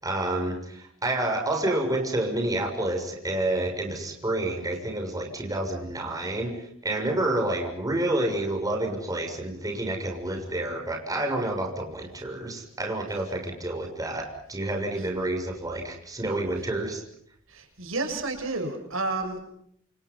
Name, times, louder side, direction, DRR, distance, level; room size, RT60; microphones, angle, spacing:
voice 1, 0.0-17.0, right 1 dB, 20° right, 2 dB, 6.9 m, -29 dB
voice 2, 17.5-19.4, right 3 dB, 80° right, 6 dB, 7.0 m, -31 dB
29.0 x 28.0 x 5.6 m, 0.69 s
head